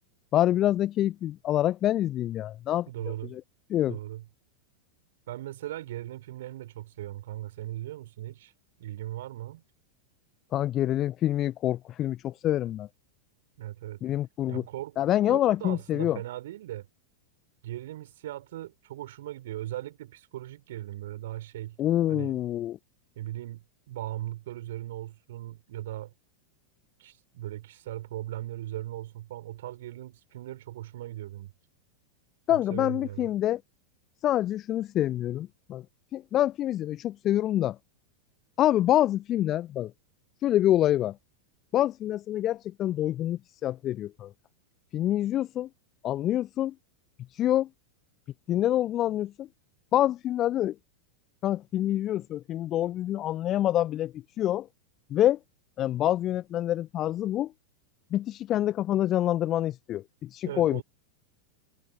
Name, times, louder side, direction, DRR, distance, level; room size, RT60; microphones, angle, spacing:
voice 1, 0.3-2.9 3.3-3.4 3.7-4.0 10.5-12.9 14.0-14.6 15.0-16.2 21.8-22.8 32.5-33.6 34.2-35.8 36.1-37.8 38.6-39.9 40.4-41.1 41.7-44.3 44.9-45.7 46.0-46.7 47.3-47.7 48.5-49.5 49.9-50.7 51.4-54.7 55.1-55.4 55.8-57.5 58.1-60.8, left 13 dB, 30° left, 1.2 m, -26 dB
voice 2, 2.9-3.4 3.9-4.2 5.3-8.5 8.8-9.6 13.6-14.0 14.5-15.0 15.3-16.9 17.6-21.8 22.1-22.4 23.2-26.1 27.0-31.5 32.5-33.3 60.4-60.8, right 14 dB, 55° right, 5.8 m, -38 dB
figure-of-eight pair, 90°, 0 cm